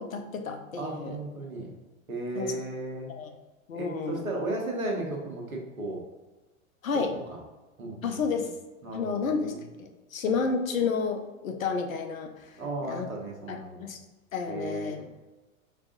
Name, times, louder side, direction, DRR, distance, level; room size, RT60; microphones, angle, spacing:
voice 1, 0.0-1.2 2.3-2.6 3.1-3.3 3.7-4.2 6.8-7.1 8.0-8.5 8.9-12.6 12.9-13.1 13.5-14.0 14.3-15.0, left 5 dB, 75° left, 5 dB, 0.8 m, -31 dB
voice 2, 0.7-1.7 2.1-3.1 3.7-6.0 7.3-7.4 7.8-8.2 8.8-9.6 10.3-10.4 12.6-13.9 14.5-15.0, right 2 dB, 85° right, 0 dB, 1.2 m, -35 dB
5.2 x 3.6 x 2.6 m, 1.1 s
figure-of-eight pair, 100°, 41 cm